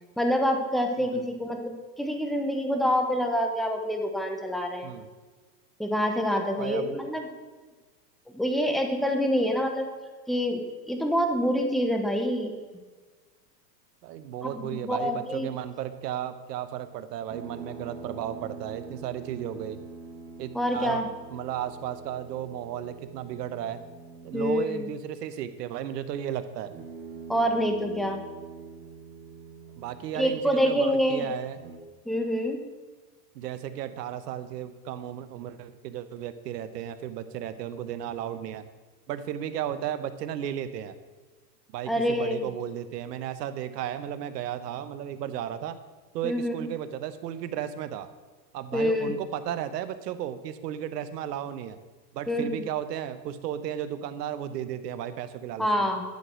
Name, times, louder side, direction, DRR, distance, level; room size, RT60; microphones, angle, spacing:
voice 1, 0.2-4.9 5.8-7.3 8.3-9.9 10.3-12.5 14.4-15.5 20.5-21.1 24.3-24.9 27.3-28.2 30.1-31.3 32.1-32.6 41.9-42.5 46.2-46.7 48.7-49.1 52.3-52.6 55.6-56.0, equal, ahead, 4 dB, 0.7 m, -26 dB
voice 2, 1.0-1.3 4.8-5.1 6.6-7.0 14.0-19.8 20.4-21.0 21.3-23.8 24.2-26.7 29.8-31.6 33.3-38.6 39.1-40.9 41.7-45.8 46.1-48.1 48.5-51.8 52.1-55.9, right 10 dB, 70° right, 12 dB, 1.0 m, -34 dB
sound 1, 17.3-24.6 26.6-30.8 31.4-31.8, right 4 dB, 30° right, 1.9 m, -44 dB
10.5 x 5.0 x 6.2 m, 1.3 s
hypercardioid pair, 130°, 50 cm